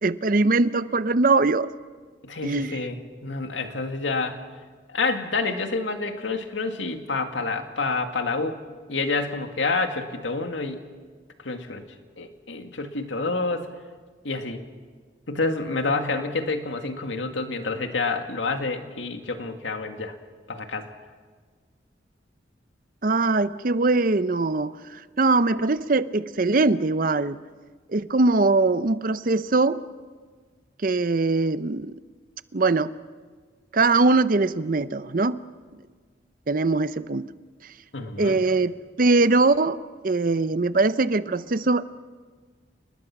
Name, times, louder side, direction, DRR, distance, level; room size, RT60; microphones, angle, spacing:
voice 1, 0.0-1.7 2.4-2.7 23.0-27.4 27.9-29.8 30.8-31.9 32.5-32.9 33.7-35.4 36.5-37.3 38.2-39.8 40.0-41.8, right 3 dB, 45° right, 14 dB, 0.6 m, -22 dB
voice 2, 2.2-4.4 4.9-8.6 8.9-10.8 11.4-11.8 12.2-13.7 14.2-14.6 15.3-20.1 20.5-20.9 37.9-38.5, left 3 dB, 85° left, 6 dB, 2.0 m, -28 dB
29.5 x 20.0 x 6.0 m, 1.5 s
head